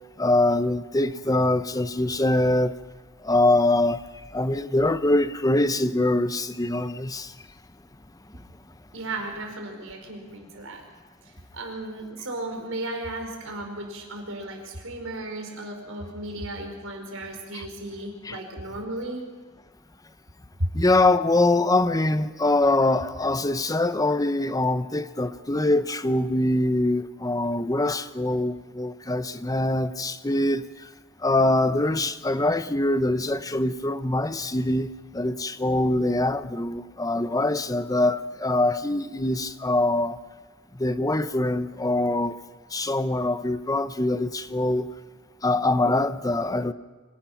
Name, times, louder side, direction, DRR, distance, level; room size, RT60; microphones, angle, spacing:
voice 1, 0.2-2.8 3.2-4.0 4.3-7.3 17.5-17.6 18.2-18.4 20.7-30.6 31.2-40.2 40.8-42.3 42.7-44.9 45.4-46.7, left 2 dB, 20° left, 0.8 m, -23 dB
voice 2, 8.9-10.8 11.5-19.2, right 2 dB, 75° right, 5.0 m, -35 dB
25.5 x 18.0 x 5.9 m
head